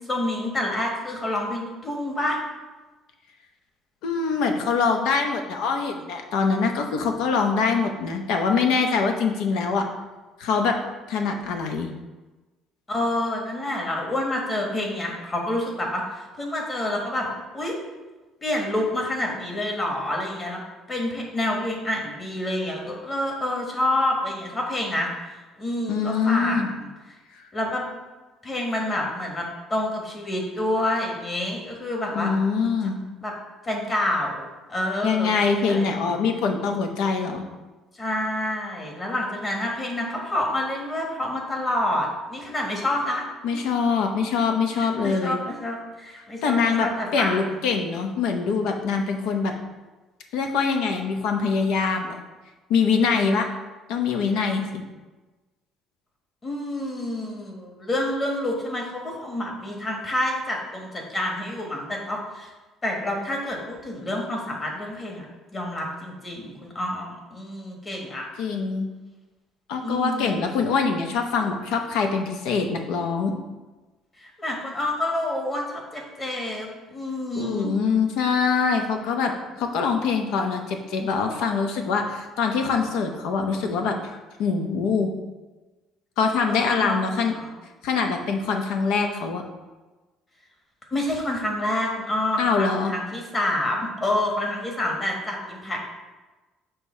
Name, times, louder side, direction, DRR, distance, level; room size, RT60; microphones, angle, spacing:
voice 1, 0.1-2.4 12.9-17.8 18.4-20.6 20.9-25.1 25.6-26.9 27.5-27.8 28.4-32.3 33.2-33.3 33.6-35.3 35.7-36.1 38.0-43.2 44.8-47.4 56.4-62.5 62.8-65.2 65.5-68.2 69.8-70.4 74.2-77.7 86.5-87.5 90.9-95.8, left 1 dB, 25° left, 0 dB, 1.4 m, -28 dB
voice 2, 4.0-9.9 10.4-10.8 11.1-11.9 25.9-26.7 32.1-33.0 35.0-37.4 43.4-45.4 46.4-46.9 47.1-49.5 50.3-52.2 52.7-53.5 53.9-54.8 68.4-68.9 69.7-73.3 77.3-85.1 86.2-87.3 87.8-89.4 92.4-92.9, left 5 dB, 85° left, 4 dB, 0.8 m, -24 dB
6.6 x 3.0 x 5.4 m, 1.2 s
cardioid pair, 135°, 0 cm